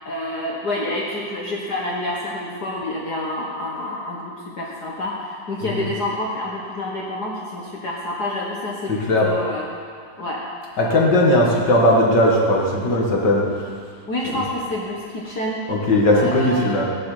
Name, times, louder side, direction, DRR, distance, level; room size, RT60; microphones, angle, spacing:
voice 1, 0.0-9.7 10.2-10.4 10.8-11.1 14.1-15.6 16.1-16.8, left 1 dB, 70° left, -4 dB, 0.9 m, -28 dB
voice 2, 5.6-5.9 8.9-9.3 10.8-13.4 14.3-14.5 15.7-16.8, left 1 dB, 40° left, -2 dB, 1.7 m, -18 dB
18.0 x 10.5 x 5.0 m, 2.1 s
omnidirectional pair, 4.1 m